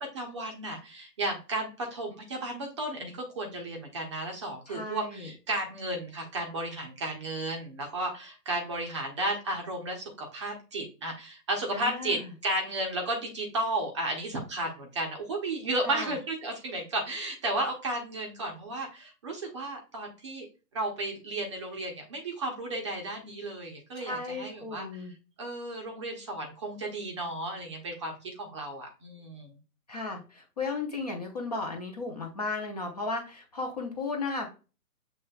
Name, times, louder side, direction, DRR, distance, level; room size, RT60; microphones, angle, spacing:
voice 1, 0.0-20.5 20.7-25.1 25.4-29.6, right 1 dB, 20° right, 1 dB, 0.6 m, -33 dB
voice 2, 4.7-5.3 11.7-12.3 15.8-16.1 24.0-25.1 29.9-34.5, left 3 dB, 25° left, 2 dB, 0.6 m, -35 dB
7.2 x 3.3 x 2.2 m, 0.33 s
hypercardioid pair, 140°, 48 cm